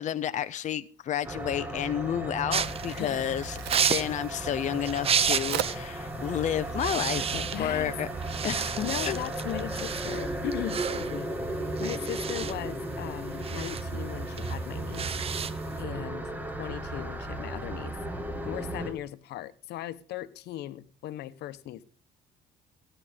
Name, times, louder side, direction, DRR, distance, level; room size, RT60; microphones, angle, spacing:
voice 1, 0.0-3.6 3.9-8.1 8.4-9.2, left 10 dB, 45° left, 0.7 m, -31 dB
sound 1, 1.2-18.9, right 1 dB, 10° right, 2.4 m, -35 dB
sound 2, 2.5-5.9 6.2-6.4 6.7-7.9 8.2-15.8, right 7 dB, 35° right, 0.8 m, -32 dB
voice 2, 2.8-3.3 7.5-8.0 8.8-11.3 11.8-15.5 15.8-16.3 16.6-17.9 18.4-21.8, left 14 dB, 75° left, 1.1 m, -38 dB
Crack, 3.0-9.9, right 11 dB, 80° right, 1.3 m, -42 dB
16.5 x 10.0 x 5.1 m
cardioid pair, 110°, 17 cm